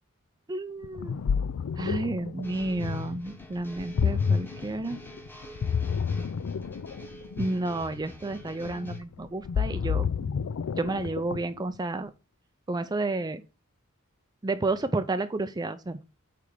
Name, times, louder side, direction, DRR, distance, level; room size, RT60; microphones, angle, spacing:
voice 1, 0.5-1.2 1.8-5.0 7.4-10.1 10.8-12.1 12.7-13.4 14.4-16.0, right 2 dB, 20° right, 10 dB, 0.4 m, -31 dB
Ocean, 0.8-11.6, left 6 dB, 75° left, 0.4 m, -30 dB
sound 1, 2.4-9.0, right 1 dB, 10° left, 1.1 m, -47 dB
8.6 x 3.4 x 5.0 m, 0.30 s
head